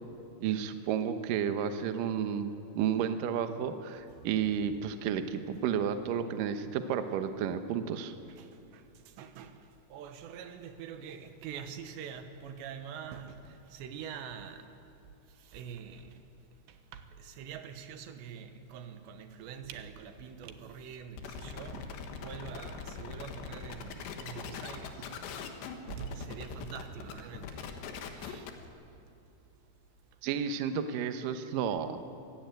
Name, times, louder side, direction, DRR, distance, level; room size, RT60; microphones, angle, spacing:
voice 1, 0.4-8.1 30.2-32.0, right 8 dB, 70° right, 2.2 m, -32 dB
voice 2, 4.1-4.4 5.5-5.7 8.2-14.9 15.3-27.7 28.0-28.7, right 7 dB, 90° right, 3.5 m, -45 dB
sound 1, 21.2-28.7, left 6 dB, 80° left, 3.7 m, -42 dB
24.0 x 16.0 x 9.2 m
omnidirectional pair, 4.9 m